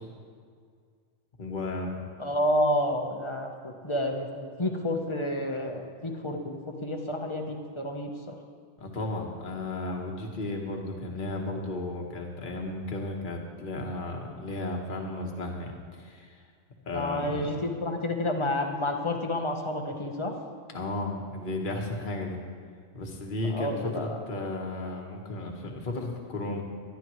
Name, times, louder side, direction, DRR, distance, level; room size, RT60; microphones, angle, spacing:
voice 1, 1.4-2.1 8.8-16.3 16.9-17.5 20.7-22.4 22.9-26.6, left 2 dB, 40° left, 1 dB, 1.4 m, -34 dB
voice 2, 2.2-4.3 4.6-8.4 16.9-20.3 23.5-24.2, left 1 dB, 25° left, 3 dB, 1.0 m, -30 dB
19.0 x 11.5 x 3.2 m, 2.1 s
omnidirectional pair, 1.4 m